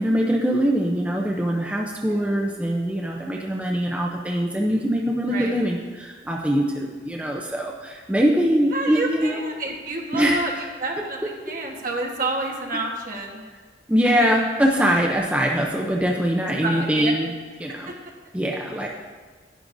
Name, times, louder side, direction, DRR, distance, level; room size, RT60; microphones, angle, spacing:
voice 1, 0.0-9.4 10.1-10.4 13.9-17.3 17.6-17.9 18.3-18.9, equal, 10° right, -1 dB, 0.6 m, -22 dB
voice 2, 5.3-5.6 8.7-10.5 10.8-13.4 14.0-14.1 16.4-17.1, right 2 dB, 50° right, 0 dB, 1.3 m, -29 dB
11.0 x 9.7 x 2.6 m, 1.4 s
head